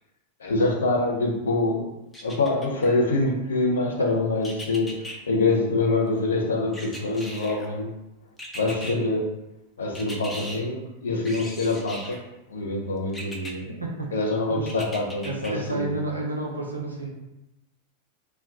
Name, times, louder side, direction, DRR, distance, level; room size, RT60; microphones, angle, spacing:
voice 1, 0.4-1.9 2.2-7.9 8.5-9.3 9.8-12.2 12.5-13.6 14.1-16.0, left 2 dB, 65° left, 0 dB, 0.6 m, -25 dB
sound 1, 2.1-2.9 4.4-5.2 6.7-7.7 8.4-8.9 9.9-10.6 11.2-12.2 13.1-13.5 14.7-15.5 16.0-16.1, equal, 10° left, 0.5 m, -38 dB
voice 2, 15.2-17.1, right 2 dB, 85° right, -1 dB, 0.6 m, -31 dB
2.3 x 2.2 x 3.5 m, 0.93 s
figure-of-eight pair, 90°, 0 cm